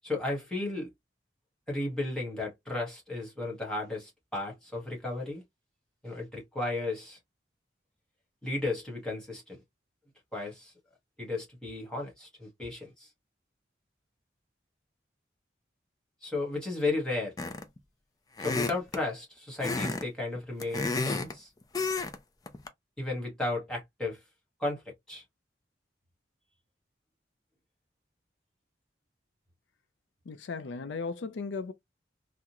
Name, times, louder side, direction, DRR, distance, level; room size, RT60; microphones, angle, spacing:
voice 1, 0.0-0.9 1.7-5.4 6.0-7.2 8.4-9.6 10.3-10.7 11.2-13.1 16.2-17.3 18.4-21.5 23.0-24.2 24.6-24.8 25.1-25.2, left 2 dB, 5° left, 1.4 m, -34 dB
sound 1, 17.4-17.8 18.4-19.0 19.6-20.0 20.4-21.3 21.7-22.2 22.5-22.7, left 3 dB, 20° left, 0.4 m, -31 dB
voice 2, 30.3-31.7, left 4 dB, 85° left, 0.4 m, -36 dB
3.6 x 2.1 x 2.9 m
head